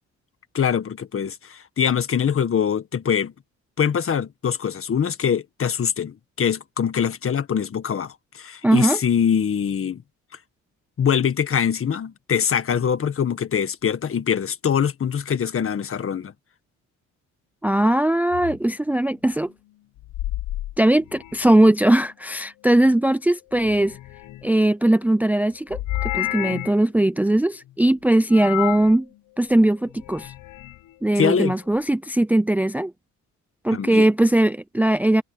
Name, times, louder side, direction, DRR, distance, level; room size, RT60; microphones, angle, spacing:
voice 1, 0.5-3.3 3.8-10.0 11.0-16.3 31.2-31.5 33.7-34.1, left 7 dB, 45° left, 1.7 m, -23 dB
voice 2, 8.6-9.0 17.6-19.5 20.8-24.0 24.4-25.8 26.1-29.1 29.4-30.3 31.0-32.9 33.6-35.2, right 1 dB, 5° right, 0.5 m, -19 dB
sound 1, 18.3-18.6 20.0-21.6 23.5-24.7 25.7-26.8 28.3-28.9 29.9-30.8, left 16 dB, 80° left, 1.1 m, -31 dB
cardioid pair, 90°, 30 cm